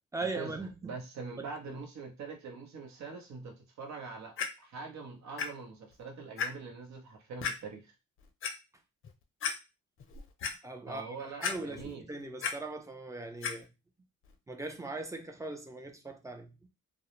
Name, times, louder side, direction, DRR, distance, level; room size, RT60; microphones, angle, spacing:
voice 1, 0.1-1.0 1.7-1.8 10.6-13.7 14.5-16.7, right 2 dB, 10° right, 0.4 m, -40 dB
voice 2, 0.8-7.9 10.9-12.0, right 4 dB, 65° right, 0.8 m, -43 dB
Clock, 4.4-4.5 5.4-5.5 5.9-6.0 6.4-6.5 7.4-7.5 8.2-8.5 9.0-9.1 9.4-9.5 10.0-10.5 11.4-11.9 12.2-12.5 13.4-13.5 14.2-14.3, left 6 dB, 45° left, 0.5 m, -33 dB
2.3 x 2.0 x 2.9 m
cardioid pair, 90°, 30 cm